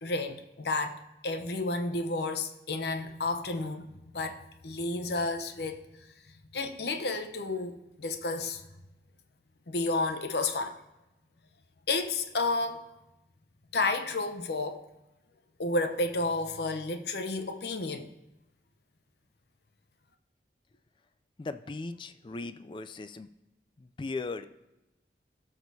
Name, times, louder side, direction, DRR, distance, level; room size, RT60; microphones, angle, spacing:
voice 1, 0.0-5.9 6.5-8.6 9.7-10.8 11.9-12.8 13.7-14.9 15.6-18.1, left 2 dB, 70° left, 0.7 m, -31 dB
voice 2, 21.4-23.3 23.8-24.5, left 3 dB, 25° left, 0.3 m, -38 dB
17.5 x 6.1 x 2.7 m
head